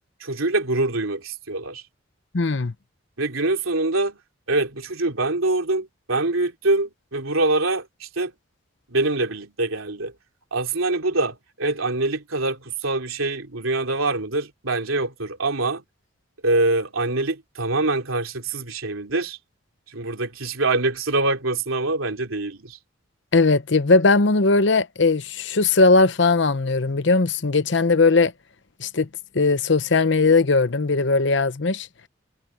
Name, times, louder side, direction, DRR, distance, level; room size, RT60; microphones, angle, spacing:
voice 1, 0.2-1.8 3.2-4.2 4.5-8.3 8.9-10.1 10.5-15.8 16.4-19.4 19.9-22.8, right 2 dB, 85° right, 3.2 m, -24 dB
voice 2, 2.3-2.7 23.3-28.3 28.8-29.1 29.3-31.9, left 3 dB, 60° left, 0.8 m, -19 dB
head